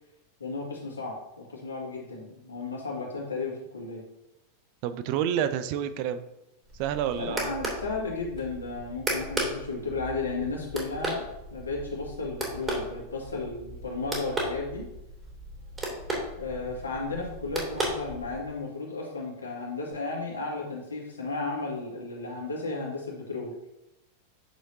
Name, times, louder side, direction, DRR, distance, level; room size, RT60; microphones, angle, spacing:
voice 1, 0.4-4.0 7.1-14.9 16.4-23.5, left 3 dB, 75° left, -2 dB, 2.0 m, -34 dB
voice 2, 4.8-6.2 6.8-7.5, right 9 dB, 45° right, 12 dB, 0.5 m, -29 dB
sound 1, 6.7-18.6, right 1 dB, 15° right, 2.5 m, -36 dB
9.1 x 6.5 x 2.7 m, 0.91 s
figure-of-eight pair, 90°, 0 cm